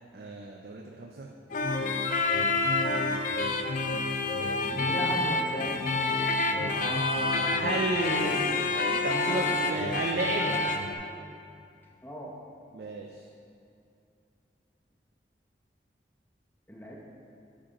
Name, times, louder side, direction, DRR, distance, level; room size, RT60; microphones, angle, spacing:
voice 1, 0.1-1.3 6.6-10.7 12.7-13.2, right 3 dB, 60° right, 2 dB, 0.4 m, -33 dB
sound 1, 1.5-10.9, left 3 dB, 45° left, 0.4 m, -28 dB
voice 2, 4.3-5.8 12.0-12.4 16.7-17.0, equal, 10° left, -2 dB, 0.8 m, -38 dB
8.3 x 7.4 x 3.0 m, 2.5 s
head